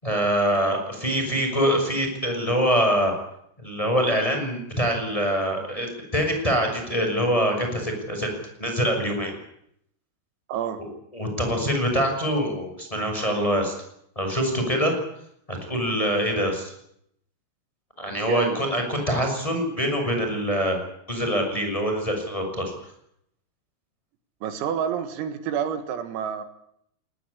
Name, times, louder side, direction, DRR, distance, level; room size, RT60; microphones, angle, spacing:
voice 1, 0.0-3.1 3.6-8.3 8.6-9.3 11.1-13.7 14.1-14.9 15.5-16.7 18.0-20.8 21.1-22.7, equal, 5° left, 3 dB, 6.1 m, -24 dB
voice 2, 10.5-10.8 18.3-18.7 24.4-26.4, right 8 dB, 80° right, 9 dB, 4.4 m, -29 dB
21.5 x 19.5 x 10.0 m, 0.73 s
omnidirectional pair, 6.0 m